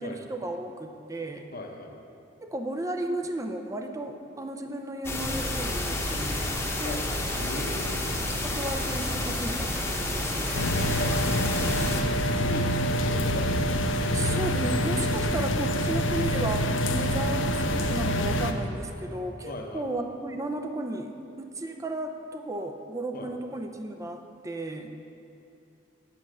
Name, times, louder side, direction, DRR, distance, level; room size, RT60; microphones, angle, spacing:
voice 1, 0.0-1.5 2.4-7.0 8.4-10.7 14.1-24.9, right 1 dB, 15° right, 5 dB, 0.5 m, -34 dB
voice 2, 1.5-1.9 6.8-7.0 7.3-8.1 11.0-11.1 12.2-13.7 14.2-14.4 19.4-19.9 23.1-23.3, left 1 dB, 50° left, 2 dB, 1.0 m, -37 dB
sound 1, 5.0-12.0, left 1 dB, 15° left, 1.0 m, -30 dB
sound 2, 10.5-18.5, left 1 dB, 80° left, 0.6 m, -26 dB
8.5 x 7.9 x 6.2 m, 2.8 s
head